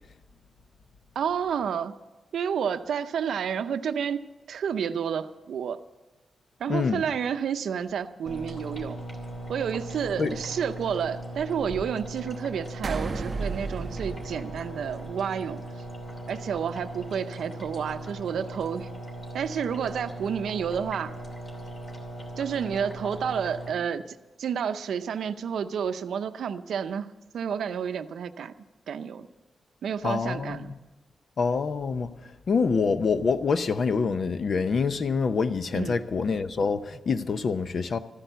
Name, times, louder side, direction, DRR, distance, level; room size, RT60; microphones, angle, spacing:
voice 1, 1.2-2.0 2.3-4.2 4.5-5.8 6.6-9.0 9.5-15.6 16.3-18.9 19.3-21.1 22.4-28.5 28.9-29.3 29.8-30.7 35.7-36.0, right 7 dB, 80° right, 0.6 m, -30 dB
voice 2, 6.7-7.0 10.2-10.3 30.0-30.7 31.4-32.1 32.5-38.0, left 5 dB, 50° left, 0.7 m, -26 dB
sound 1, 8.3-23.7, right 1 dB, 30° left, 2.8 m, -39 dB
sound 2, 12.8-15.4, right 4 dB, 35° right, 0.6 m, -34 dB
14.0 x 10.0 x 8.0 m
wide cardioid pair, 135°, 0 cm